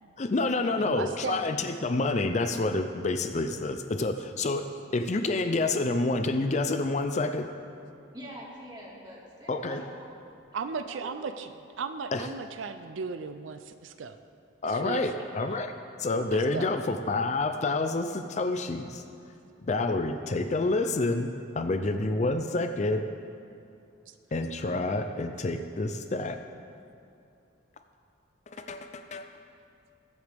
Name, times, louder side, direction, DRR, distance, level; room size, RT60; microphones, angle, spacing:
voice 1, 0.2-7.5 9.5-9.8 12.1-12.3 14.6-15.7 16.0-19.0 19.6-21.3 21.6-23.0 24.3-26.4 28.5-29.3, left 2 dB, 35° left, 7 dB, 0.4 m, -28 dB
voice 2, 0.8-1.4 10.5-11.5 11.8-14.2 14.6-15.0 16.3-16.7 24.1-24.2, right 5 dB, 75° right, 10 dB, 0.5 m, -36 dB
voice 3, 8.1-10.1 10.9-11.2 15.2-15.5, equal, 20° right, -3 dB, 2.0 m, -45 dB
20.5 x 8.0 x 3.5 m, 2.7 s
head